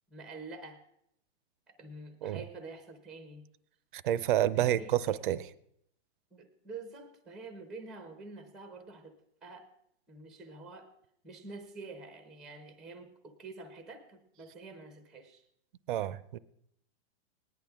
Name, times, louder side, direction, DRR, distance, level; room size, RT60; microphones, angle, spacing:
voice 1, 0.1-0.8 1.7-3.5 4.5-5.1 6.3-9.2 9.4-9.7 10.1-10.9 11.2-15.4, right 3 dB, ahead, 8 dB, 0.6 m, -47 dB
voice 2, 3.9-5.5 15.9-16.4, right 12 dB, 45° right, 18 dB, 0.5 m, -29 dB
18.0 x 10.5 x 3.5 m, 0.73 s
hypercardioid pair, 160°, 36 cm